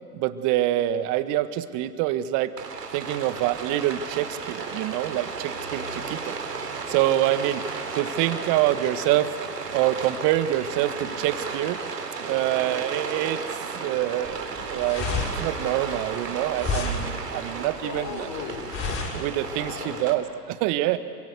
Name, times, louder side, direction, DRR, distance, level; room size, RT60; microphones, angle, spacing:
voice 1, 0.1-2.5 2.9-6.3 6.9-7.7 7.9-9.3 9.7-11.8 12.2-13.4 13.7-14.4 14.7-18.3 19.1-21.0, right 14 dB, 40° right, 12 dB, 1.6 m, -26 dB
Rain, 2.6-20.1, right 4 dB, 80° right, 3.8 m, -34 dB
sound 1, 14.3-19.8, left 3 dB, 30° left, 6.0 m, -31 dB
voice 2, 17.7-20.1 20.9-21.0, left 6 dB, 45° left, 3 dB, 6.2 m, -38 dB
28.0 x 25.0 x 8.2 m, 2.2 s
figure-of-eight pair, 100°, 47 cm